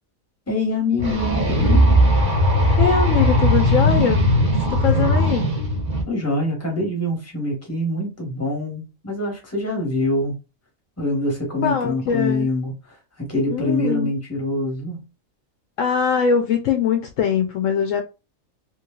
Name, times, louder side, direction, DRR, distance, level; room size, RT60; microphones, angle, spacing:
voice 1, 0.5-1.8 6.1-10.3 11.0-12.7 13.2-15.0, left 1 dB, 10° left, 1.1 m, -24 dB
sound 1, 1.0-6.0, equal, 40° right, 1.0 m, -18 dB
voice 2, 2.8-4.3 4.7-5.5 11.6-12.5 13.5-14.1 15.8-18.0, left 7 dB, 70° left, 0.9 m, -22 dB
3.0 x 3.0 x 2.3 m
omnidirectional pair, 1.4 m